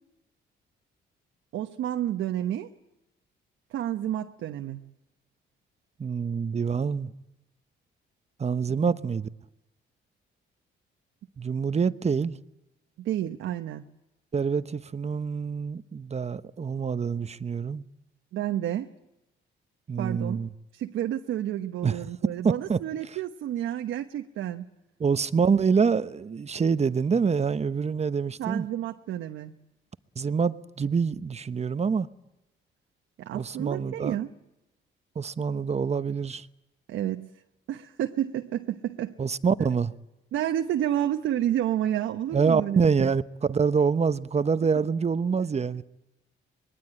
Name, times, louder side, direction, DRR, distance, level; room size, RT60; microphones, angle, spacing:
voice 1, 1.5-2.7 3.7-4.9 8.7-9.0 13.0-13.8 18.3-18.9 20.0-20.4 20.7-24.7 28.4-29.5 33.2-34.3 36.9-37.3 37.7-39.2 40.3-43.1, right 11 dB, 80° right, 1.1 m, -30 dB
voice 2, 6.0-7.1 8.4-9.3 11.4-12.4 14.3-17.8 19.9-20.5 21.8-22.0 22.4-22.8 25.0-28.7 30.2-32.1 33.3-34.2 35.1-36.5 39.2-39.9 42.3-43.2 43.5-45.8, right 5 dB, 35° right, 1.0 m, -26 dB
25.5 x 21.5 x 8.9 m
cardioid pair, 90°, 20 cm